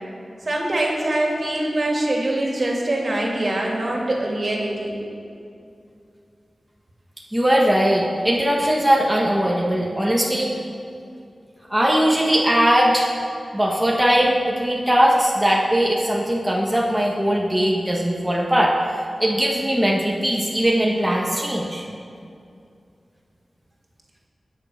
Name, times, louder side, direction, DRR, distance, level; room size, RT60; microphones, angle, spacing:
voice 1, 0.4-4.9, right 1 dB, 50° right, -2 dB, 2.9 m, -23 dB
voice 2, 7.3-10.6 11.7-13.1 13.5-18.8 19.2-21.8, equal, 10° right, -3 dB, 1.7 m, -20 dB
21.0 x 7.0 x 5.9 m, 2.5 s
wide cardioid pair, 65°, 0 cm